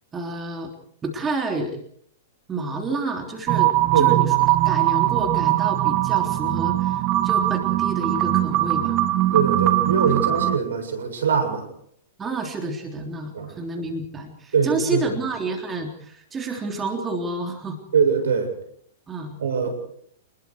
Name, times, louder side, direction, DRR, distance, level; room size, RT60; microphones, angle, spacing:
voice 1, 0.1-0.7 1.0-1.8 2.5-9.0 12.2-17.8 19.1-19.4, right 2 dB, 20° right, 4 dB, 3.5 m, -29 dB
sound 1, 3.5-10.6, right 15 dB, 40° right, 1.3 m, -21 dB
voice 2, 9.3-11.7 13.3-13.5 14.5-15.1 17.9-18.5 19.4-19.7, right 6 dB, 75° right, 7 dB, 7.3 m, -22 dB
28.0 x 21.0 x 4.7 m, 0.67 s
hypercardioid pair, 110°, 0 cm